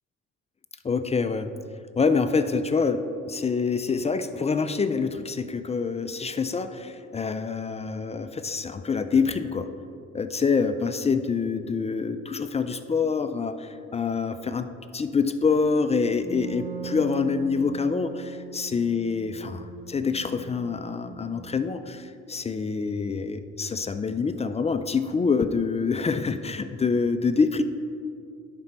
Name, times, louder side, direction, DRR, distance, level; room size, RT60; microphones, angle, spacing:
voice 1, 0.8-1.5 2.0-9.7 10.1-27.6, left 5 dB, 20° left, 10 dB, 0.3 m, -26 dB
Wind instrument woodwind instrument, 16.2-21.9, right 8 dB, 20° right, 0.8 m, -41 dB
10.5 x 4.4 x 4.3 m, 2.4 s
cardioid pair, 90°, 30 cm